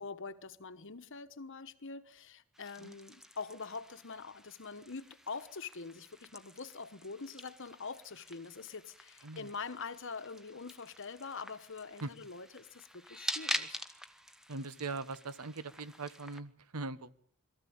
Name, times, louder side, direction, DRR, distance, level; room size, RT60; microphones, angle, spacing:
voice 1, 0.0-13.8, left 4 dB, 60° left, 1.2 m, -44 dB
sound 1, 2.5-16.4, equal, ahead, 1.0 m, -45 dB
voice 2, 14.5-17.1, right 3 dB, 85° right, 1.1 m, -41 dB
22.5 x 14.5 x 8.7 m
head